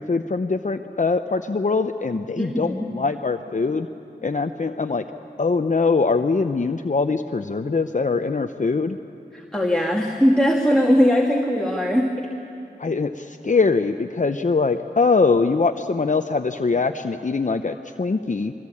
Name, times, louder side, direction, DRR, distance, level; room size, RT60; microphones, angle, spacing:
voice 1, 0.0-3.9 4.2-5.0 5.4-9.0 12.8-18.5, left 4 dB, 45° left, 7 dB, 0.7 m, -22 dB
voice 2, 2.4-2.9 9.3-12.1, equal, 5° left, -1 dB, 2.4 m, -20 dB
23.0 x 20.5 x 8.6 m, 2.7 s
cardioid pair, 45°, 18 cm